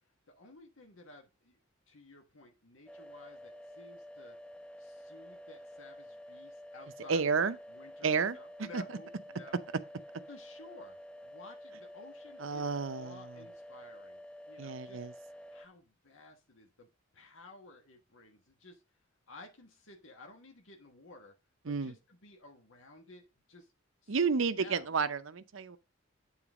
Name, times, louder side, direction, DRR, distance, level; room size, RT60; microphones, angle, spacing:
voice 1, 0.3-1.6 1.9-4.4 4.8-9.6 10.3-15.1 15.5-16.9 17.1-18.8 19.3-21.3 21.7-23.7 24.0-24.9, left 2 dB, 75° left, 1.5 m, -54 dB
Machinery Whine, 2.9-15.7, equal, 5° left, 0.4 m, -50 dB
voice 2, 7.1-7.5 8.0-8.8 12.4-13.4 14.6-15.1 21.7-21.9 24.1-25.8, right 5 dB, 70° right, 0.7 m, -31 dB
8.8 x 4.0 x 5.0 m
head